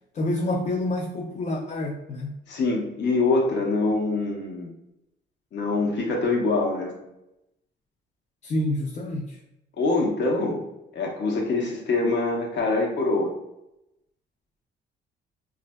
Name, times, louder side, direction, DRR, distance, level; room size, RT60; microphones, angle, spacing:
voice 1, 0.1-2.4 8.4-9.4, left 1 dB, 35° left, 0 dB, 0.4 m, -28 dB
voice 2, 2.5-4.7 5.5-7.0 9.8-10.7 10.9-13.3, left 3 dB, 65° left, -1 dB, 0.8 m, -24 dB
4.1 x 2.4 x 2.2 m, 0.88 s
cardioid pair, 90°, 20 cm